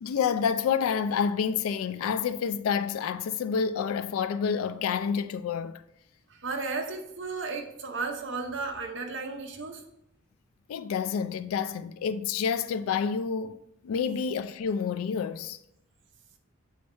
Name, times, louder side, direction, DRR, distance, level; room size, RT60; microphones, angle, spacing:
voice 1, 0.0-5.8 10.7-13.6 13.8-15.6, left 6 dB, 85° left, 0.3 m, -28 dB
voice 2, 6.3-9.8, right 4 dB, 60° right, 0.8 m, -34 dB
7.0 x 3.2 x 4.3 m
head